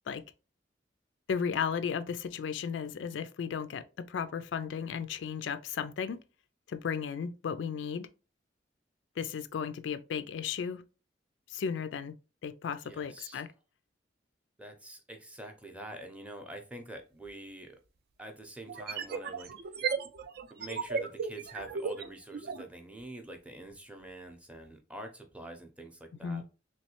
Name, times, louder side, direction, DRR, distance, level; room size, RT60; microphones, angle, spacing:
voice 1, 1.3-6.2 6.7-8.1 9.2-10.8 11.5-12.1 12.4-13.5 26.2-26.4, left 6 dB, 85° left, 0.3 m, -35 dB
voice 2, 12.8-13.4 14.6-17.8 18.2-19.5 20.5-26.5, right 1 dB, 10° right, 0.5 m, -46 dB
sound 1, 17.3-17.4 18.7-22.7, right 5 dB, 55° right, 0.4 m, -35 dB
3.1 x 3.1 x 2.9 m
head